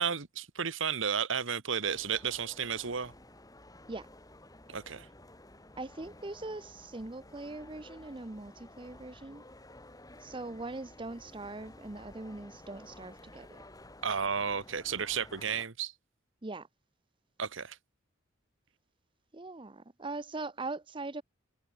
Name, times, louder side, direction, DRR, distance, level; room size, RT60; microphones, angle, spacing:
voice 1, 0.0-3.1 4.7-5.1 14.0-15.9 17.4-17.8, right 6 dB, 70° right, 1.3 m, -32 dB
sound 1, 1.8-15.7, left 1 dB, 20° left, 3.9 m, -53 dB
voice 2, 5.8-9.4 10.2-13.6 16.4-16.7 19.3-21.2, right 2 dB, 25° right, 0.7 m, -41 dB
head